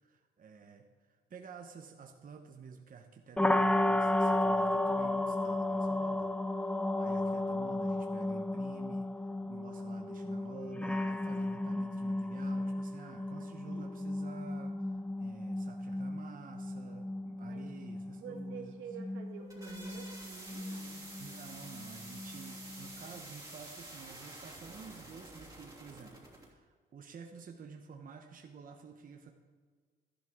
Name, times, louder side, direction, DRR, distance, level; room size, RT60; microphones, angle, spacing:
voice 1, 0.0-9.1 9.4-18.7 21.2-29.3, right 6 dB, 45° right, 3 dB, 1.1 m, -51 dB
sound 1, 3.4-23.2, left 1 dB, 5° left, 0.5 m, -34 dB
voice 2, 12.9-13.9 17.4-17.7 18.1-21.1, right 7 dB, 80° right, 2 dB, 1.7 m, -49 dB
sound 2, 19.2-26.5, right 1 dB, 15° right, 2.9 m, -49 dB
13.0 x 11.0 x 3.7 m, 1.6 s
cardioid pair, 90°, 20 cm